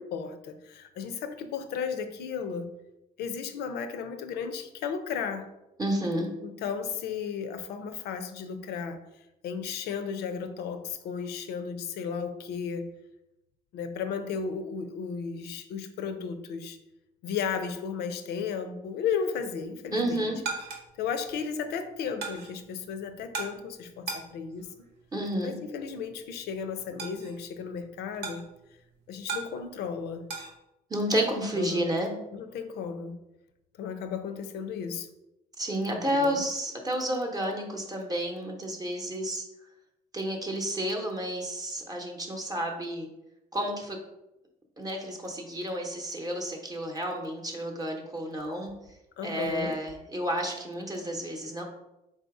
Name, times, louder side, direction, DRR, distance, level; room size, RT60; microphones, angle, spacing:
voice 1, 0.0-2.7 3.2-5.6 6.4-9.0 9.4-12.9 13.7-16.8 17.2-20.3 21.0-24.7 25.4-28.4 29.1-30.2 31.5-31.9 32.3-33.2 33.8-35.1 35.9-36.4 49.2-49.8, left 6 dB, 75° left, 9 dB, 0.6 m, -34 dB
voice 2, 5.8-6.3 19.9-20.4 25.1-25.6 30.9-32.1 35.6-39.4 40.1-43.1 43.5-44.0 44.8-48.7 49.2-51.6, right 1 dB, 20° right, 1 dB, 0.8 m, -31 dB
sound 1, 19.9-30.5, right 4 dB, 90° right, 1.0 m, -41 dB
3.9 x 2.7 x 4.7 m, 0.91 s
cardioid pair, 110°, 17 cm